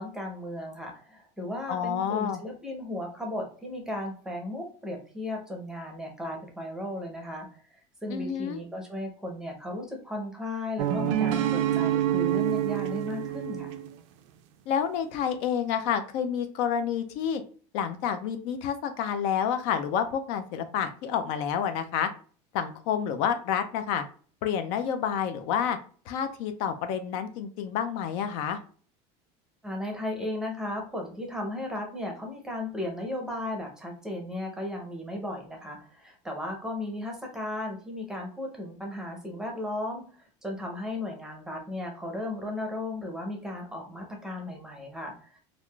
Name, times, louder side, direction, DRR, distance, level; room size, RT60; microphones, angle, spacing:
voice 1, 0.0-13.7 29.6-40.1 40.4-45.4, left 1 dB, 5° right, 1 dB, 0.6 m, -35 dB
voice 2, 1.7-2.4 8.1-8.6 14.7-17.4 17.7-22.1 22.5-24.0 24.4-25.8 26.1-28.6, left 8 dB, 60° left, 9 dB, 0.4 m, -29 dB
sound 1, 10.8-13.9, right 11 dB, 75° right, 0.4 m, -27 dB
3.4 x 2.5 x 2.3 m, 0.42 s
cardioid pair, 160°, 15 cm